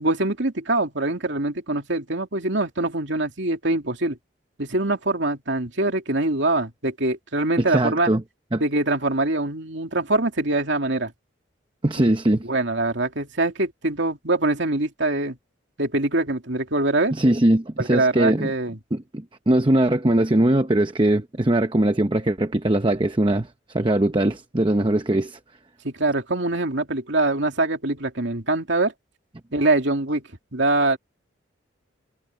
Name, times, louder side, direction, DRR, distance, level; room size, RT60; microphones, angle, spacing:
voice 1, 0.0-4.2 4.6-8.1 8.6-11.1 12.4-15.4 15.8-17.1 17.8-18.8 25.8-28.9 29.5-30.2 30.5-31.0, right 2 dB, 60° right, 2.9 m, -23 dB
voice 2, 7.7-8.2 8.5-8.6 11.8-12.4 17.1-18.5 18.9-25.4, right 1 dB, 25° right, 0.8 m, -21 dB
head